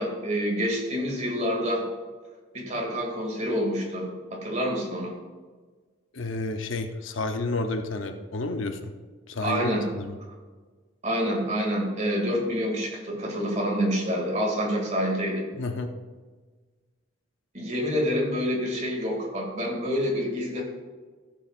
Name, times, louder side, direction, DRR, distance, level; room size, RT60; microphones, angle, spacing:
voice 1, 0.0-1.8 2.5-5.1 9.4-9.8 11.0-15.4 17.5-20.6, equal, 35° right, -2 dB, 2.4 m, -27 dB
voice 2, 6.1-8.9 9.3-10.2 15.6-15.9, left 2 dB, 80° left, 6 dB, 0.8 m, -30 dB
14.5 x 7.1 x 2.5 m, 1.4 s
head